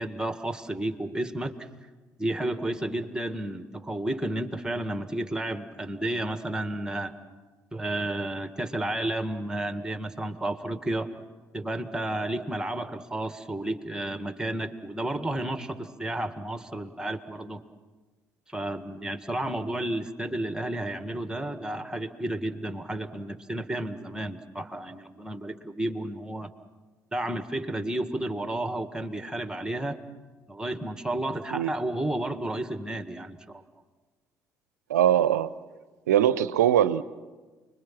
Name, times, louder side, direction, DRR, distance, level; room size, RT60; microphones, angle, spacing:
voice 1, 0.0-1.7 2.2-7.1 7.7-11.1 11.5-17.6 18.5-26.5 27.1-30.0 30.5-33.6, right 1 dB, 10° right, 1.9 m, -32 dB
voice 2, 34.9-35.5 36.1-37.0, right 11 dB, 80° right, 0.7 m, -21 dB
30.0 x 22.0 x 6.0 m
figure-of-eight pair, 50°, 9 cm